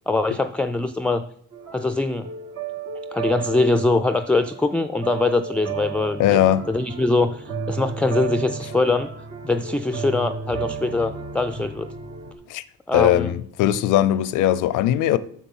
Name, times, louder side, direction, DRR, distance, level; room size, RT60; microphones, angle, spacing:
voice 1, 0.1-1.2 1.7-2.3 3.1-6.4 6.7-9.1 9.4-11.9 12.9-13.3, left 3 dB, 5° left, 0.3 m, -22 dB
sound 1, 1.5-12.3, right 6 dB, 65° right, 1.4 m, -33 dB
voice 2, 6.2-6.6 12.5-12.6 12.9-15.2, left 12 dB, 90° left, 0.5 m, -19 dB
7.3 x 6.7 x 5.5 m
cardioid pair, 90°, 30 cm